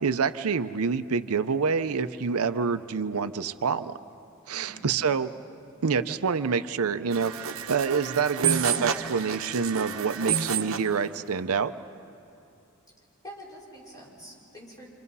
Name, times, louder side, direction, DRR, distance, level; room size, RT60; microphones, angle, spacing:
voice 1, 0.0-4.0 4.5-5.3 5.8-11.7, right 5 dB, 90° right, 11 dB, 0.6 m, -27 dB
voice 2, 4.5-4.9 13.2-14.9, equal, 15° left, -5 dB, 5.3 m, -46 dB
sound 1, 7.1-10.9, right 7 dB, 65° right, 1.0 m, -29 dB
28.0 x 26.5 x 5.5 m, 2.7 s
head